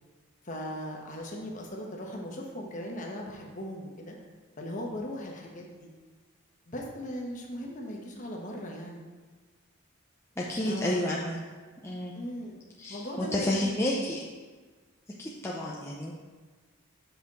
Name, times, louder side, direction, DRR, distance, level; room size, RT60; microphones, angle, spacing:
voice 1, 0.4-4.1 4.6-5.9 6.7-9.0 10.6-11.2 12.1-12.6 12.9-13.7, equal, 40° left, -1 dB, 1.2 m, -38 dB
voice 2, 10.4-11.4 11.8-12.2 12.8-14.3 15.2-16.1, left 1 dB, 10° left, -4 dB, 0.6 m, -30 dB
7.6 x 5.6 x 4.2 m, 1.4 s
head